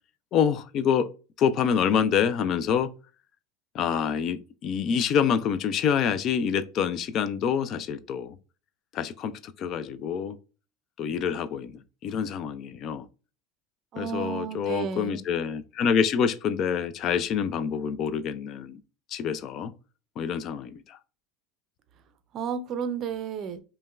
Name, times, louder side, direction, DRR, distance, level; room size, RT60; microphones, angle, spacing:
voice 1, 0.3-1.1 1.4-2.9 3.7-8.4 8.9-10.4 11.0-13.1 14.0-18.8 19.1-19.7 20.2-21.0, left 7 dB, 45° left, 0.3 m, -26 dB
voice 2, 13.9-15.2 22.3-23.6, right 7 dB, 45° right, 0.5 m, -32 dB
5.2 x 2.1 x 2.3 m
supercardioid pair, 115°, 0 cm